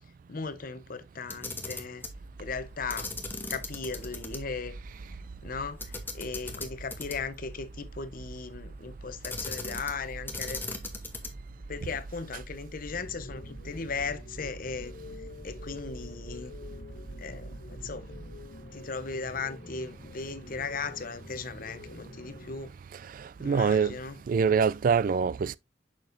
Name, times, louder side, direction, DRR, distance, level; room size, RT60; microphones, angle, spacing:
voice 1, 0.3-2.0 2.4-3.1 3.5-4.8 5.4-10.6 11.7-14.9 15.4-16.5 17.2-18.2 18.7-22.7 23.4-24.2, left 4 dB, 50° left, 0.8 m, -37 dB
Camera, 1.2-2.2 2.9-4.4 4.7-4.8 5.8-7.4 9.2-10.0 10.3-11.5, left 3 dB, 10° left, 1.0 m, -38 dB
sound 1, 2.1-18.5, right 2 dB, 85° right, 0.8 m, -45 dB
sound 2, 12.9-22.6, left 2 dB, 70° left, 1.6 m, -47 dB
voice 2, 22.9-24.0 24.3-25.6, right 6 dB, 50° right, 0.3 m, -25 dB
6.8 x 6.1 x 2.5 m
head